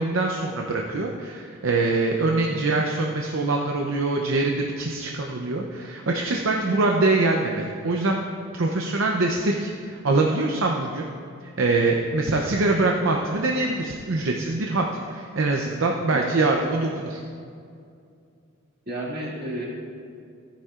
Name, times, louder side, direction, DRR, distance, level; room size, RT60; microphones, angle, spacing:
voice 1, 0.0-8.2 8.5-11.1 11.6-17.2, right 2 dB, 65° right, 1 dB, 0.6 m, -24 dB
voice 2, 12.3-12.6 16.1-16.3 18.9-19.7, right 1 dB, 45° right, -5 dB, 2.2 m, -32 dB
14.5 x 10.0 x 2.5 m, 2.4 s
head